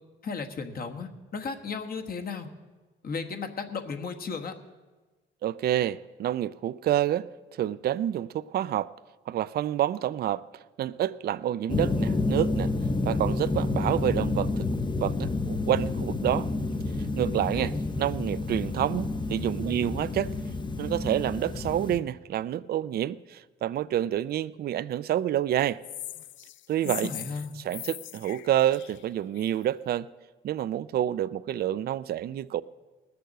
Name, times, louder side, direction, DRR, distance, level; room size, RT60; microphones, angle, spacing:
voice 1, 0.2-2.5 3.0-4.5 17.5-17.9 26.8-27.5, left 5 dB, 50° left, 1.3 m, -35 dB
voice 2, 5.4-7.3 7.6-8.9 9.3-10.4 10.8-12.7 13.1-14.7 15.0-16.5 17.2-20.3 20.8-25.8 26.7-27.1 27.6-30.1 30.4-32.6, right 12 dB, 50° right, 0.4 m, -28 dB
sound 1, 11.7-22.0, left 3 dB, 25° left, 0.7 m, -29 dB
sound 2, 25.8-29.6, left 13 dB, 75° left, 0.4 m, -41 dB
19.5 x 6.8 x 6.4 m
cardioid pair, 90°, 20 cm